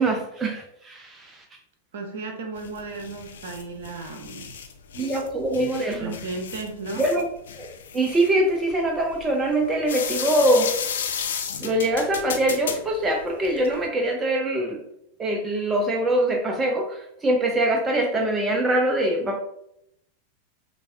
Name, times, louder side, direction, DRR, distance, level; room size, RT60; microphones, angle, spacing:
voice 1, 0.0-1.4 5.0-6.2 7.0-7.3 7.6-7.7 7.9-10.7 11.6-14.8 15.2-19.4, right 1 dB, 15° right, 3 dB, 0.5 m, -23 dB
voice 2, 1.9-4.6 6.0-7.1, right 3 dB, 60° right, 3 dB, 0.8 m, -35 dB
sound 1, 2.6-13.9, left 7 dB, 65° left, 0.4 m, -34 dB
6.1 x 2.5 x 2.3 m, 0.78 s
figure-of-eight pair, 90°, 0 cm